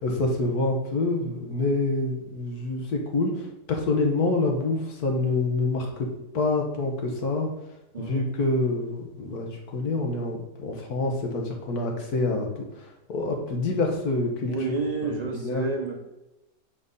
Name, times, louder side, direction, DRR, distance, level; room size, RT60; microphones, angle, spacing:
voice 1, 0.0-6.1 6.3-7.5 8.0-14.5 15.0-15.6, left 2 dB, 65° left, 2 dB, 1.6 m, -27 dB
voice 2, 7.9-8.3 14.5-16.0, right 3 dB, 45° right, 2 dB, 0.5 m, -29 dB
5.9 x 4.2 x 5.3 m, 0.94 s
omnidirectional pair, 1.8 m